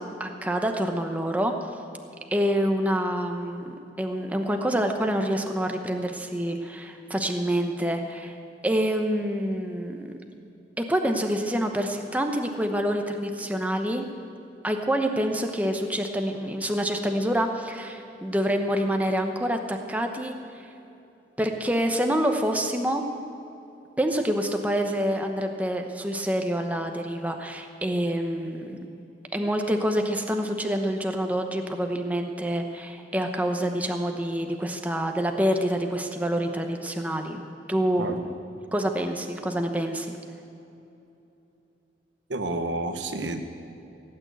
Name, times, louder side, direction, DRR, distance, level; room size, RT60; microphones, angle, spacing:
voice 1, 0.0-1.6 2.3-8.4 8.6-10.1 10.8-14.1 14.6-20.7 21.4-23.0 24.0-28.8 29.3-37.4 37.7-38.3 38.7-40.2, equal, 10° right, 4 dB, 0.9 m, -27 dB
voice 2, 42.3-43.4, right 2 dB, 90° right, 6 dB, 1.2 m, -30 dB
16.5 x 9.0 x 8.1 m, 2.8 s
head